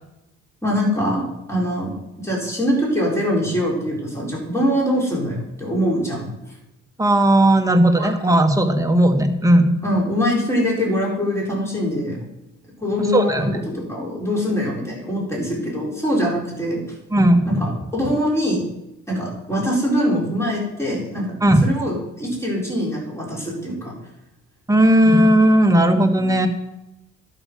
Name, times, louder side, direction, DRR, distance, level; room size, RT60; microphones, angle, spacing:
voice 1, 0.6-1.9 2.2-6.3 8.0-8.1 9.8-12.3 12.8-16.8 17.4-18.6 19.1-21.3 21.6-23.9, equal, 10° left, -4 dB, 4.4 m, -23 dB
voice 2, 7.0-9.7 13.1-13.7 17.1-17.6 21.4-21.7 24.7-26.5, right 1 dB, 10° right, 4 dB, 1.5 m, -16 dB
11.5 x 6.1 x 6.1 m, 0.91 s
cardioid pair, 90°, 30 cm